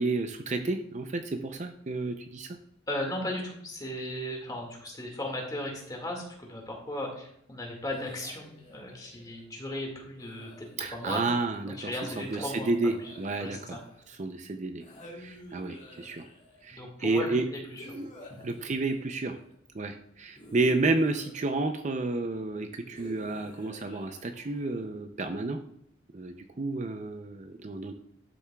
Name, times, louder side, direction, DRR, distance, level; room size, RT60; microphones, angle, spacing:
voice 1, 0.0-2.6 10.8-13.8 14.2-14.8 15.2-16.2 16.6-17.5 17.9-18.1 18.4-19.4 19.7-25.6 26.1-27.9, right 3 dB, 35° right, 6 dB, 0.5 m, -31 dB
voice 2, 2.9-11.2 11.7-12.7 13.0-13.1 13.4-13.8 16.7-17.9, left 1 dB, 20° left, 0 dB, 1.9 m, -36 dB
sound 1, 7.9-9.4 10.2-11.1 12.0-14.2 14.8-16.7 17.8-19.5 20.4-22.0 22.9-24.9, equal, 35° left, 2.1 m, -49 dB
12.0 x 6.9 x 2.3 m, 0.71 s
head